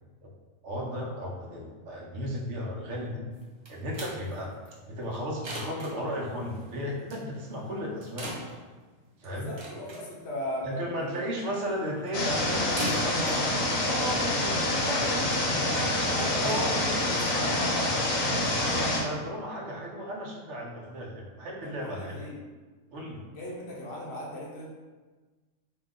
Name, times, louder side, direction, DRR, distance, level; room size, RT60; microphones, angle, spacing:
voice 1, 0.6-3.2 3.7-4.5 4.8-8.3 9.2-9.5 10.6-13.5 13.8-15.4 15.7-17.1 18.4-22.2 22.9-23.2, equal, 65° right, -1 dB, 0.9 m, -35 dB
sound 1, 3.3-14.8, right 1 dB, 45° right, 0.3 m, -42 dB
voice 2, 9.3-11.2 11.7-11.8 16.0-18.1 21.6-22.4 23.3-24.7, left 1 dB, 60° left, -4 dB, 0.9 m, -38 dB
sound 2, 12.1-19.0, left 1 dB, 80° left, 1.0 m, -27 dB
2.7 x 2.3 x 3.6 m, 1.3 s
omnidirectional pair, 1.4 m